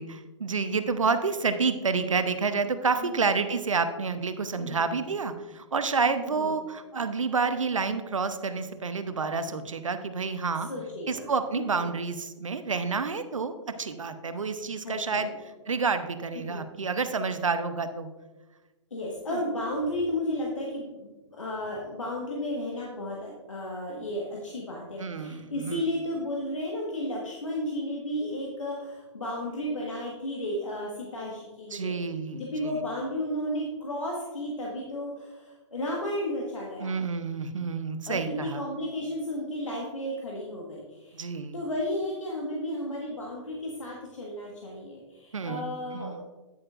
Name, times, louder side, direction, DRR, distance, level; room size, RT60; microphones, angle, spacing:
voice 1, 0.0-10.7 11.1-13.5 13.8-15.3 15.7-18.1 19.3-19.4 25.0-25.8 31.7-32.8 36.8-38.6 41.1-41.6 45.3-46.2, right 4 dB, 85° right, 10 dB, 0.8 m, -29 dB
voice 2, 3.0-3.3 4.6-4.9 6.2-6.5 10.6-11.3 11.6-11.8 14.8-15.3 16.3-16.6 18.9-32.0 32.3-36.9 38.1-41.2 41.5-46.2, left 1 dB, 85° left, -3 dB, 1.5 m, -33 dB
9.6 x 8.5 x 2.5 m, 1.2 s
figure-of-eight pair, 120°, 16 cm